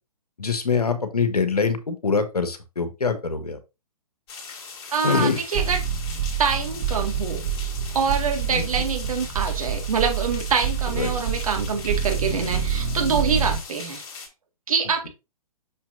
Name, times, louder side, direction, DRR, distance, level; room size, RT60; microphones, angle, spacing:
voice 1, 0.4-3.6 5.0-5.4 8.5-8.7 10.9-11.1, left 5 dB, 80° left, 9 dB, 1.4 m, -24 dB
sound 1, 4.3-14.3, left 5 dB, 40° left, 3.1 m, -40 dB
voice 2, 4.9-5.8 6.4-7.4 7.9-14.0 14.7-15.1, right 6 dB, 65° right, 4 dB, 1.9 m, -25 dB
sound 2, 5.5-13.6, right 7 dB, 45° right, 2.2 m, -27 dB
6.6 x 5.9 x 2.6 m, 0.26 s
figure-of-eight pair, 125°, 19 cm